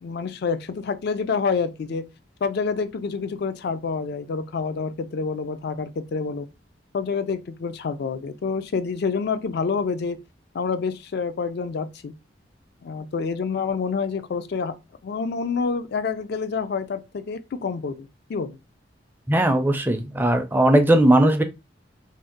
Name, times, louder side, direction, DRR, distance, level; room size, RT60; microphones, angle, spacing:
voice 1, 0.0-2.0 2.4-6.5 6.9-10.2 10.5-12.1 12.8-14.7 15.0-18.6, left 5 dB, 60° left, 0.4 m, -27 dB
voice 2, 19.3-21.4, right 1 dB, 10° right, 0.4 m, -18 dB
2.6 x 2.1 x 3.7 m
head